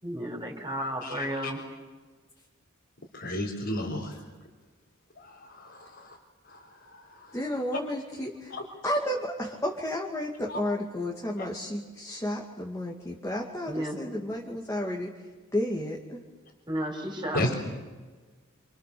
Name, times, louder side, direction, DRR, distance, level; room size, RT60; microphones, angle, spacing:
voice 1, 0.0-1.6 13.7-14.0 16.7-17.5, equal, 20° right, 1 dB, 4.7 m, -33 dB
voice 2, 1.0-1.5 3.1-4.2 5.2-6.2 6.5-6.6 6.9-7.3 8.5-8.6 10.5-10.6 11.4-11.5 17.3-17.5, left 1 dB, 60° left, -2 dB, 3.9 m, -33 dB
voice 3, 7.3-8.5 8.8-15.1 15.5-16.2, left 1 dB, 15° left, -3 dB, 2.6 m, -32 dB
28.0 x 27.5 x 7.1 m, 1.4 s
head